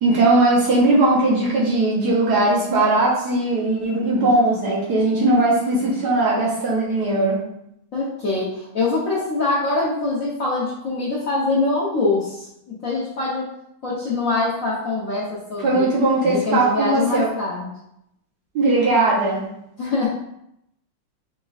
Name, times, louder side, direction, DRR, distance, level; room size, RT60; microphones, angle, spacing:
voice 1, 0.0-7.4 15.6-17.3 18.5-19.5, right 2 dB, 55° right, -5 dB, 1.4 m, -19 dB
voice 2, 7.9-13.5 13.8-15.9 16.2-17.7 19.8-20.1, left 3 dB, 55° left, -6 dB, 1.0 m, -24 dB
5.1 x 3.6 x 2.4 m, 0.78 s
omnidirectional pair, 2.3 m